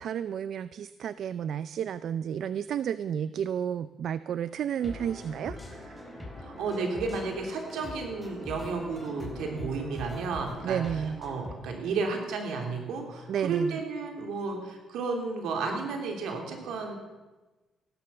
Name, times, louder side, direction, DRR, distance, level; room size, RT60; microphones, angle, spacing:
voice 1, 0.0-6.1 10.6-11.2 13.3-13.8, right 8 dB, 65° right, 15 dB, 0.5 m, -32 dB
sound 1, 4.8-11.5, left 1 dB, 10° left, 4.1 m, -42 dB
voice 2, 6.4-10.8 11.2-17.0, right 4 dB, 85° right, 3 dB, 3.4 m, -32 dB
16.0 x 12.0 x 7.1 m, 1.2 s
cardioid pair, 90°, 0 cm